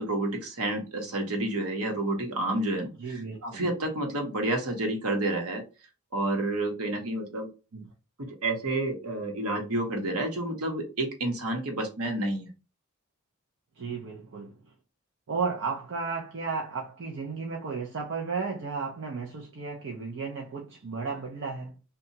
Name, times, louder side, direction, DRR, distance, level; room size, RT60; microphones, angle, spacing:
voice 1, 0.0-5.6 6.1-7.5 8.4-12.5, right 2 dB, 80° right, 1.0 m, -30 dB
voice 2, 3.0-3.6 7.7-7.9 13.8-14.6 15.3-21.8, right 4 dB, 60° right, 0.5 m, -34 dB
2.8 x 2.3 x 2.7 m
head